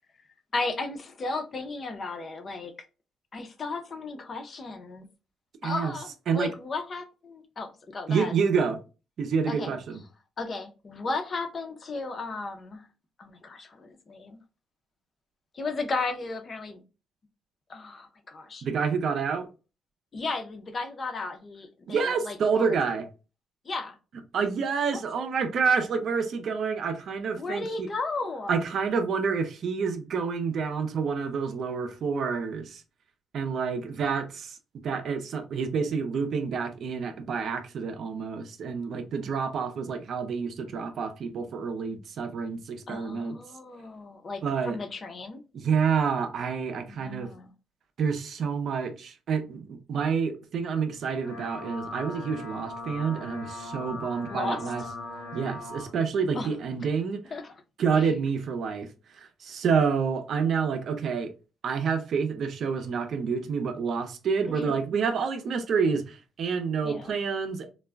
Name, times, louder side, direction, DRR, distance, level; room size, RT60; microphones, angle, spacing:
voice 1, 0.5-2.7 3.3-5.1 5.6-8.3 9.5-9.7 10.4-12.9 13.2-14.4 15.5-16.8 17.7-18.6 20.1-22.8 23.6-24.0 24.9-25.3 27.4-28.6 42.9-45.4 46.9-47.5 54.3-54.6 56.3-56.5 57.3-57.5 58.0-58.1 64.6-64.7 66.8-67.1, left 3 dB, 40° left, 0.5 m, -35 dB
voice 2, 5.6-5.9 6.3-6.5 8.1-8.8 9.2-10.0 18.6-19.5 21.9-23.0 24.3-27.9 28.5-32.8 33.3-34.6 34.8-43.4 44.4-44.8 45.5-47.3 48.0-54.8 55.3-57.2 57.8-58.9 59.1-61.3 61.6-67.7, right 5 dB, 60° right, 0.5 m, -28 dB
sound 1, 50.9-55.9, left 2 dB, 90° left, 0.6 m, -39 dB
2.3 x 2.1 x 3.3 m
cardioid pair, 90°, 0 cm